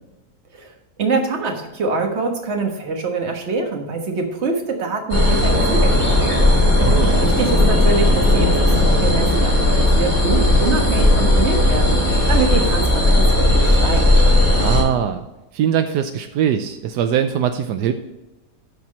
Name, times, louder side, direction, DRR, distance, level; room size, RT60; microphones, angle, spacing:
voice 1, 0.5-6.5 7.2-14.2, right 3 dB, 45° right, 3 dB, 1.5 m, -25 dB
sound 1, 5.1-14.8, left 1 dB, 20° left, 2.8 m, -16 dB
voice 2, 6.8-7.2 14.6-15.2 15.5-17.9, right 9 dB, 80° right, 8 dB, 1.2 m, -21 dB
13.5 x 4.5 x 4.2 m, 1.0 s
omnidirectional pair, 1.8 m